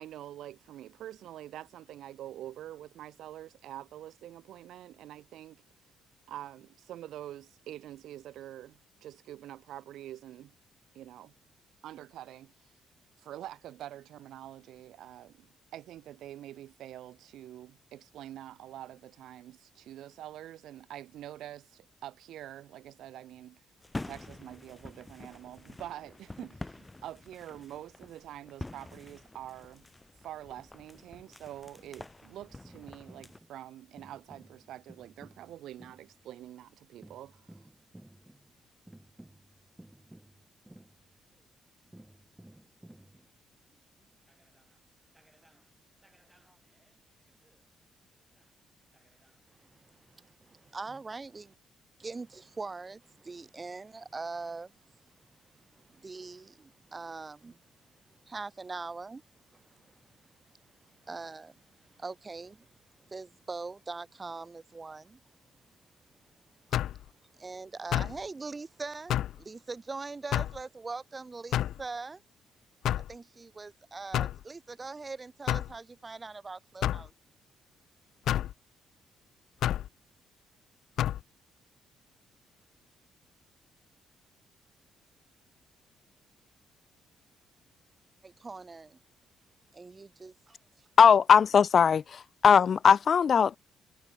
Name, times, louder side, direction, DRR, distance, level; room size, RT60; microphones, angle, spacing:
voice 1, 0.0-5.6 6.3-10.5 10.9-11.3 11.8-12.5 13.2-15.5 15.7-23.6 24.0-29.8 30.2-37.6, right 12 dB, 80° right, 1.1 m, -46 dB
sound 1, 23.8-33.4, left 2 dB, 15° left, 2.2 m, -46 dB
sound 2, 32.4-33.6 34.0-36.3 37.0-41.5 41.9-44.8 45.1-45.7 46.0-47.9 48.2-48.4 48.9-49.4, right 1 dB, 10° right, 7.5 m, -56 dB
voice 2, 49.6-51.5 52.0-54.8 55.7-57.6 58.2-59.2 59.5-60.0 61.0-62.7 63.1-65.2 67.4-72.2 73.1-77.1 88.2-89.0 89.7-90.6, right 3 dB, 25° right, 6.6 m, -42 dB
sound 3, 66.7-67.0 67.9-68.2 69.1-69.4 70.3-70.6 71.5-71.8 72.9-73.1 74.1-74.4 75.5-75.7 76.8-77.1 78.3-78.5 79.6-79.9 81.0-81.2, left 12 dB, 75° left, 1.2 m, -29 dB
voice 3, 91.0-93.6, left 7 dB, 50° left, 0.4 m, -20 dB
cardioid pair, 90°, 0 cm